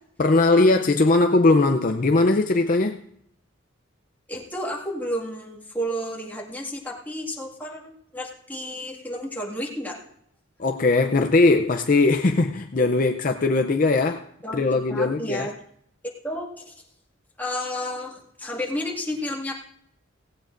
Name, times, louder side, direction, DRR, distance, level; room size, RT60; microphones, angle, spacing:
voice 1, 0.2-3.0 10.6-14.2 14.5-15.5, left 3 dB, 40° left, 0.5 m, -20 dB
voice 2, 4.3-10.0 14.4-15.5 16.2-16.8 17.4-19.5, equal, 10° left, 1.9 m, -31 dB
17.5 x 16.0 x 2.6 m
head